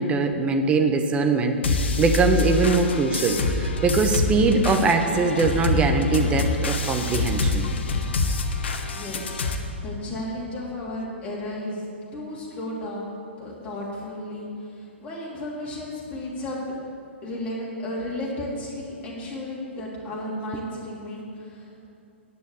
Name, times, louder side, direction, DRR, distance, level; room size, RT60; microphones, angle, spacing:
voice 1, 0.0-7.6, right 4 dB, 15° right, 5 dB, 0.9 m, -22 dB
sound 1, 1.6-9.6, left 3 dB, 60° left, 1.1 m, -25 dB
voice 2, 8.9-16.8 17.2-21.9, left 1 dB, 20° left, -5 dB, 3.1 m, -34 dB
9.5 x 6.9 x 8.3 m, 2.7 s
figure-of-eight pair, 120°, 7 cm